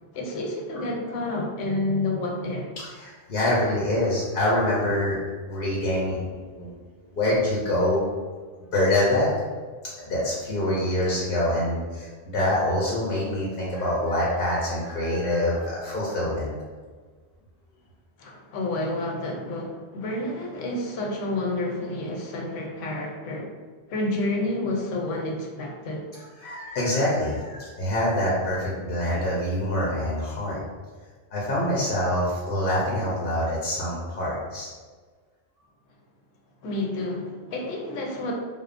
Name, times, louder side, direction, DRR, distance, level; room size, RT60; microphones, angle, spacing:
voice 1, 0.1-2.7 18.2-23.5 23.9-26.1 36.6-38.3, left 2 dB, 80° left, 0 dB, 0.9 m, -29 dB
voice 2, 3.0-5.2 5.4-6.2 6.5-6.7 7.1-8.0 8.7-9.3 10.1-16.5 26.1-30.6 31.3-34.7, left 1 dB, 55° left, -6 dB, 0.6 m, -25 dB
2.9 x 2.0 x 2.4 m, 1.5 s
omnidirectional pair, 1.3 m